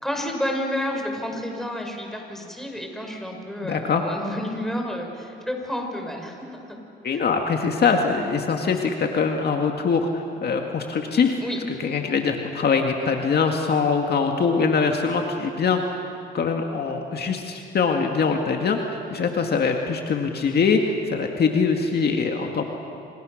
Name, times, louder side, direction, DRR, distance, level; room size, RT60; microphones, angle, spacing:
voice 1, 0.0-6.8 7.1-7.2 11.4-11.6, left 1 dB, ahead, 2 dB, 5.6 m, -30 dB
voice 2, 3.6-4.0 7.0-10.1 10.4-11.4 11.8-16.0 16.3-22.6, left 5 dB, 55° left, 3 dB, 2.1 m, -23 dB
28.0 x 28.0 x 6.5 m, 2.6 s
cardioid pair, 90°, 20 cm